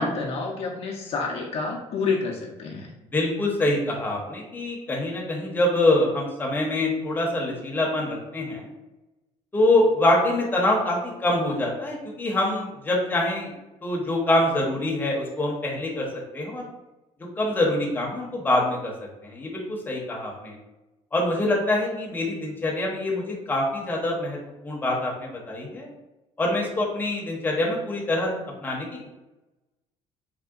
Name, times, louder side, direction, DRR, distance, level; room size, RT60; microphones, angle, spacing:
voice 1, 0.0-2.9, left 4 dB, 55° left, -2 dB, 0.5 m, -29 dB
voice 2, 3.1-8.7 9.5-13.5 13.8-16.1 16.3-16.6 17.4-18.9 19.2-20.6 21.1-24.4 24.6-25.9 26.4-28.3 28.6-29.1, left 1 dB, 15° left, -2 dB, 0.7 m, -25 dB
3.5 x 2.1 x 2.3 m, 1.0 s
cardioid pair, 120°, 13 cm